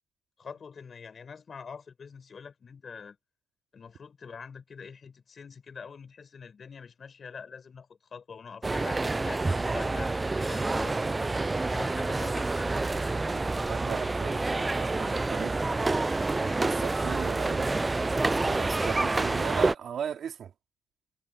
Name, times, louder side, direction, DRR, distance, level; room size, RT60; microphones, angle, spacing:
voice 1, 0.4-3.2 3.7-11.1 11.6-12.8, left 6 dB, 45° left, 5.6 m, -45 dB
sound 1, 8.6-19.7, right 3 dB, 20° right, 0.3 m, -28 dB
voice 2, 13.7-17.7 18.4-20.5, right 8 dB, 60° right, 3.1 m, -37 dB
cardioid pair, 90°, 0 cm